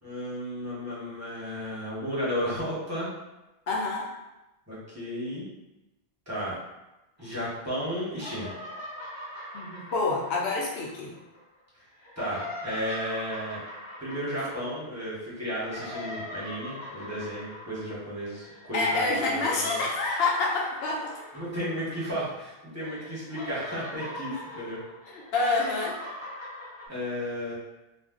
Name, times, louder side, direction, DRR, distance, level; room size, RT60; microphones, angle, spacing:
voice 1, 0.0-3.1 4.7-5.5 6.3-6.6 7.2-8.5 12.2-13.6 14.0-19.8 21.3-24.8 26.9-27.5, equal, 15° right, -8 dB, 1.0 m, -33 dB
voice 2, 3.7-4.1 9.5-11.1 18.7-21.1 25.1-26.0, left 3 dB, 65° left, -2 dB, 0.9 m, -27 dB
sound 1, 7.2-7.8 8.1-11.4 11.9-22.5 22.8-26.9, left 1 dB, 30° left, 0.6 m, -41 dB
2.5 x 2.2 x 3.6 m, 0.99 s
omnidirectional pair, 1.2 m